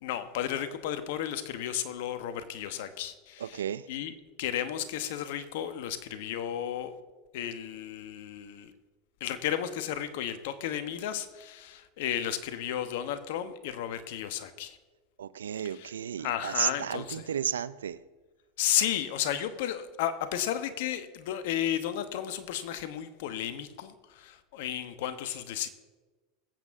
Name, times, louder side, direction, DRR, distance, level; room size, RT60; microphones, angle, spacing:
voice 1, 0.0-3.6 3.9-6.9 7.3-8.7 9.2-14.8 15.6-15.9 16.2-17.2 18.6-25.7, left 10 dB, 65° left, 1.1 m, -33 dB
voice 2, 3.4-3.9 15.2-18.0, right 9 dB, 85° right, 0.4 m, -33 dB
21.0 x 8.4 x 3.7 m
hypercardioid pair, 95°, 0 cm